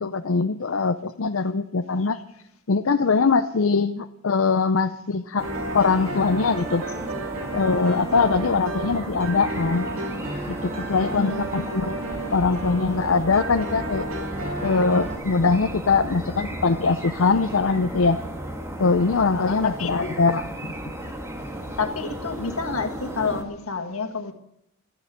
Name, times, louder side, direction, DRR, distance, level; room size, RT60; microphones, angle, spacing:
voice 1, 0.0-2.2 2.7-5.5 5.7-6.8 7.5-9.9 10.5-12.0 12.3-14.1 14.6-18.2 18.8-20.7, left 4 dB, 70° left, 8 dB, 0.6 m, -22 dB
sound 1, 5.4-23.4, right 1 dB, 15° right, 1.7 m, -35 dB
sound 2, 5.4-15.2, right 2 dB, 90° right, 2.6 m, -33 dB
voice 2, 10.9-11.5 19.3-20.1 21.8-24.3, left 4 dB, 90° left, 6 dB, 1.8 m, -29 dB
13.0 x 10.5 x 8.6 m, 0.79 s
head